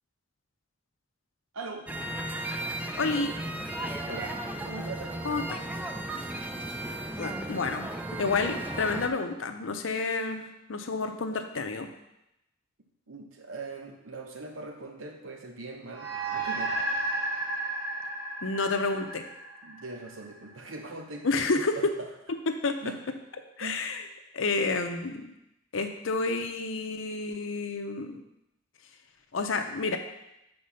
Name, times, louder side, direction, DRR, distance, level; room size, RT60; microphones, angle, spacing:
voice 1, 1.5-1.9 4.1-4.4 4.6-5.3 13.1-16.9 19.6-21.3 21.8-22.1 22.8-23.0 23.6-23.8, right 3 dB, 85° right, 4 dB, 1.0 m, -41 dB
sound 1, 1.9-9.1, right 1 dB, 10° right, 0.5 m, -35 dB
voice 2, 3.0-3.3 5.2-5.4 7.2-11.9 18.4-19.2 21.2-21.9 22.3-22.8 23.6-24.1 24.3-25.3 25.7-28.2 29.3-30.0, left 3 dB, 85° left, 6 dB, 0.7 m, -30 dB
sound 2, 15.9-20.6, right 2 dB, 70° right, 2.7 m, -33 dB
6.7 x 4.3 x 5.6 m, 0.86 s
head